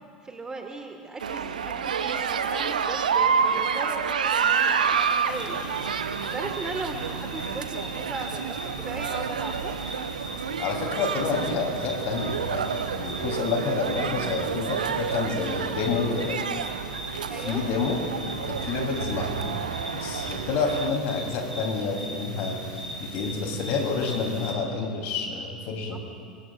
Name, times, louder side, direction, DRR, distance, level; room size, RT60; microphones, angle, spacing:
voice 1, 0.2-5.6 6.3-9.7 15.4-15.7 17.3-17.6 25.9-26.0, right 3 dB, 15° right, 3 dB, 1.7 m, -37 dB
sound 1, 1.2-20.9, right 6 dB, 70° right, 0.8 m, -29 dB
sound 2, 5.3-24.5, right 1 dB, 90° right, 2.4 m, -38 dB
voice 2, 10.6-12.6 12.9-16.4 17.4-18.0 18.3-19.5 19.9-26.0, left 4 dB, 50° left, 1 dB, 3.4 m, -29 dB
25.5 x 21.5 x 2.5 m, 2.3 s
figure-of-eight pair, 75°, 4 cm